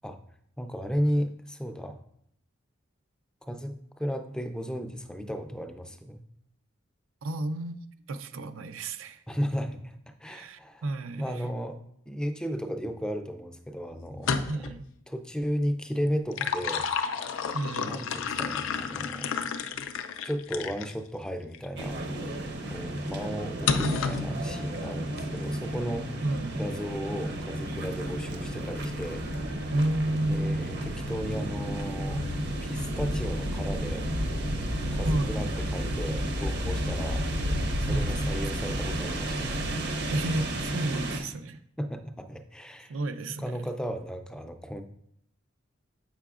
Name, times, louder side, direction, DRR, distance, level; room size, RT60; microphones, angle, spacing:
voice 1, 0.6-2.0 3.4-6.2 9.3-10.8 11.2-11.8 12.1-14.7 15.1-16.9 17.4-17.5 17.8-19.4 20.2-22.0 22.7-26.1 26.6-29.2 30.3-32.3 32.6-34.1 34.9-37.3 37.8-39.6 41.8-43.0 43.4-44.8, equal, 5° left, 0.3 m, -34 dB
voice 2, 7.2-7.8 8.1-9.2 10.2-11.4 14.5-14.8 17.5-18.0 23.8-24.0 26.2-26.7 29.7-30.8 35.0-35.5 37.9-38.2 40.1-41.6 42.9-43.6, right 2 dB, 90° right, 0.5 m, -31 dB
sound 1, 14.1-14.8 16.1-20.9 21.5-21.7 23.7-24.3, left 6 dB, 80° left, 0.4 m, -31 dB
sound 2, 21.8-41.2, equal, 55° right, 0.8 m, -32 dB
7.4 x 5.7 x 2.4 m
head